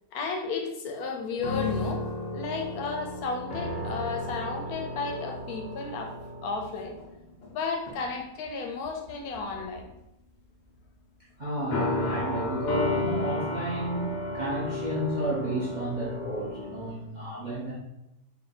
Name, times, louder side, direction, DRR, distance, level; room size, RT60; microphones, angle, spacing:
voice 1, 0.1-7.0 7.5-9.8, left 4 dB, 70° left, 3 dB, 1.0 m, -33 dB
sound 1, 1.4-7.5 7.9-8.1 9.1-9.8 11.7-16.9, left 2 dB, 90° left, 0.4 m, -33 dB
voice 2, 11.4-17.7, right 1 dB, 45° right, -6 dB, 0.6 m, -32 dB
3.6 x 2.6 x 3.9 m, 0.90 s
omnidirectional pair, 1.8 m